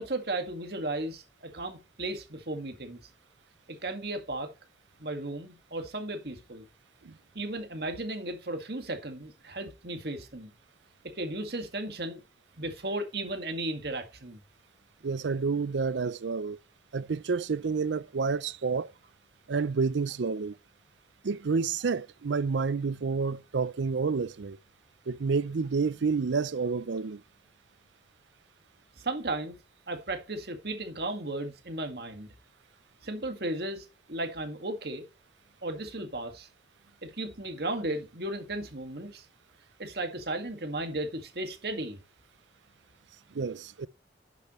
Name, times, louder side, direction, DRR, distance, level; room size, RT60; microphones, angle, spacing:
voice 1, 0.0-3.0 3.7-4.5 5.0-6.7 7.3-10.5 11.1-12.2 12.6-14.4 29.0-29.6 29.9-32.3 33.0-35.1 35.6-36.5 37.0-39.3 39.8-42.0, right 2 dB, 55° right, 1.9 m, -35 dB
voice 2, 15.0-16.6 16.9-18.9 19.5-20.6 21.2-24.6 25.1-27.2 43.3-43.9, right 4 dB, 75° right, 0.5 m, -29 dB
11.0 x 7.1 x 3.1 m
head